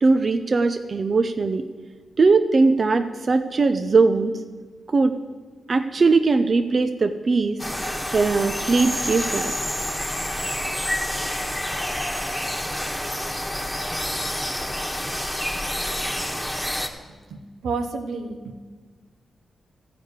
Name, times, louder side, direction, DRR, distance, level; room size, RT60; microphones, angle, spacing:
voice 1, 0.0-1.6 2.2-4.3 4.9-5.1 5.7-7.6 8.1-9.6, right 4 dB, 50° right, 8 dB, 0.6 m, -20 dB
sound 1, 7.6-16.9, left 1 dB, 10° left, 1.4 m, -28 dB
voice 2, 17.3-18.6, right 4 dB, 90° right, 5 dB, 1.0 m, -30 dB
14.0 x 5.0 x 8.0 m, 1.4 s
cardioid pair, 55°, 0 cm